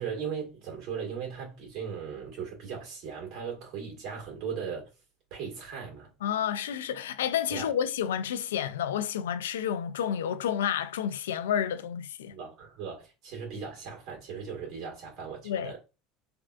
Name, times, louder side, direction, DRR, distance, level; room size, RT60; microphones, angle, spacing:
voice 1, 0.0-4.9 5.3-6.1 7.5-7.7 12.3-15.8, right 6 dB, 60° right, 1.7 m, -38 dB
voice 2, 6.2-12.3 15.4-15.8, left 9 dB, 90° left, 0.3 m, -30 dB
3.5 x 2.4 x 2.4 m
hypercardioid pair, 90°, 0 cm